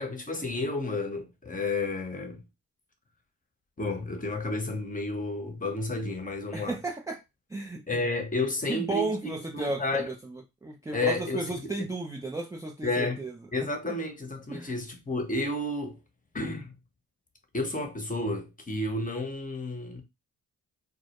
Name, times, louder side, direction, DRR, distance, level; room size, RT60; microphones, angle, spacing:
voice 1, 0.0-2.4 3.8-6.8 7.9-10.1 10.9-11.6 12.8-16.0 16.3-16.7 17.5-20.0, left 2 dB, 20° left, 0.8 m, -31 dB
voice 2, 6.5-7.2 7.5-7.8 8.7-13.3 13.9-14.0 14.5-14.7, right 2 dB, 10° right, 0.3 m, -34 dB
2.1 x 2.0 x 2.9 m
supercardioid pair, 55°, 43 cm